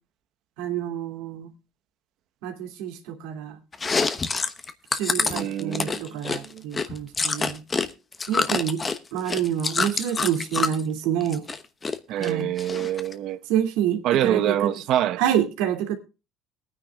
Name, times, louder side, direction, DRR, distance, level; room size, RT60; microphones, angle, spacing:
voice 1, 0.6-1.5 2.4-3.6 4.9-7.6 8.3-8.8 9.1-11.5 12.1-12.5 13.5-14.7 15.2-16.0, right 10 dB, 90° right, 2.5 m, -27 dB
Chewing mastication, 3.7-7.9 8.1-10.8 11.2-12.0 12.2-13.1, left 4 dB, 20° left, 1.1 m, -26 dB
voice 2, 5.2-6.6 12.1-13.4 14.0-15.2, right 11 dB, 60° right, 1.1 m, -26 dB
21.0 x 9.7 x 2.4 m
cardioid pair, 125°, 0 cm